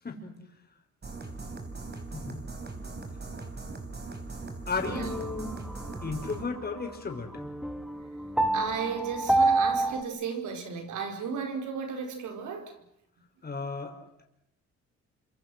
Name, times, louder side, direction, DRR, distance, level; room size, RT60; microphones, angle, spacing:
voice 1, 0.0-0.4 2.1-2.4 4.7-5.6 6.0-7.3 13.4-13.9, left 4 dB, 30° left, 3 dB, 5.8 m, -34 dB
sound 1, 1.0-6.5, right 3 dB, 35° right, 4.6 m, -40 dB
sound 2, 4.8-10.0, right 2 dB, ahead, 2.0 m, -29 dB
voice 2, 4.9-5.2 8.5-12.7, right 6 dB, 80° right, 5 dB, 4.8 m, -34 dB
27.5 x 25.5 x 6.4 m, 0.78 s
cardioid pair, 90°, 30 cm